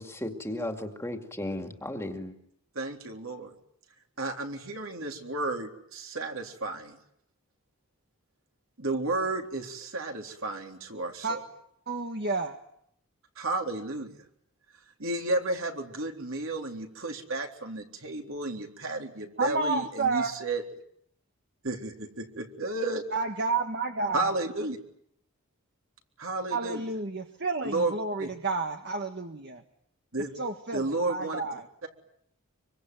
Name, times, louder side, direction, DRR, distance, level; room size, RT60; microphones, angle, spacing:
voice 1, 0.0-2.3, left 1 dB, 10° left, 5 dB, 2.4 m, -35 dB
voice 2, 2.8-3.5 4.2-7.0 8.8-11.4 13.4-14.1 15.0-20.6 21.7-21.9 22.4-23.0 24.1-24.8 26.2-26.8 27.6-27.9 28.2-28.3 30.1-30.3 30.7-31.4, right 2 dB, 65° right, 3 dB, 3.8 m, -32 dB
voice 3, 11.9-12.6 19.4-20.3 23.1-24.3 26.5-29.6 30.3-31.6, right 3 dB, 45° right, 4 dB, 1.6 m, -30 dB
25.5 x 24.5 x 9.3 m, 0.73 s
head